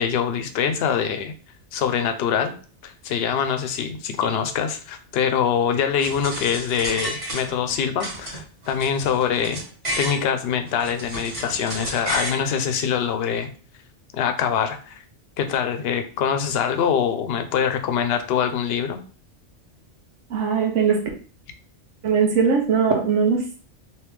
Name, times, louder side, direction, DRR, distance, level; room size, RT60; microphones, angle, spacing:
voice 1, 0.0-1.3 1.7-2.5 2.8-9.6 10.0-13.5 14.1-15.0 15.4-19.0, left 7 dB, 65° left, 7 dB, 0.7 m, -24 dB
sound 1, 6.0-7.7 8.0-10.2 10.7-12.4, right 1 dB, 30° right, 1.3 m, -32 dB
voice 2, 20.3-21.0 22.0-23.6, right 6 dB, 85° right, 3 dB, 1.1 m, -20 dB
3.3 x 2.9 x 3.1 m, 0.41 s
omnidirectional pair, 1.2 m